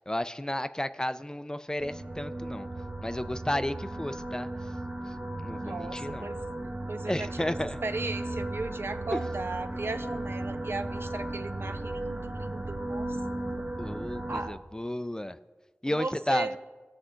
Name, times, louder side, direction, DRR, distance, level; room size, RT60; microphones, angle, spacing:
voice 1, 0.0-2.7 3.0-4.5 5.4-6.3 7.1-7.8 9.1-9.2 13.8-15.4 15.8-16.5, left 1 dB, 15° left, 12 dB, 0.4 m, -32 dB
sound 1, 1.8-14.5, right 1 dB, 35° right, 1.1 m, -36 dB
voice 2, 5.6-6.4 6.9-7.5 7.8-13.1 14.3-14.6 15.9-16.6, right 3 dB, 65° right, 10 dB, 0.6 m, -36 dB
18.0 x 6.9 x 3.8 m, 1.3 s
wide cardioid pair, 45°, 4 cm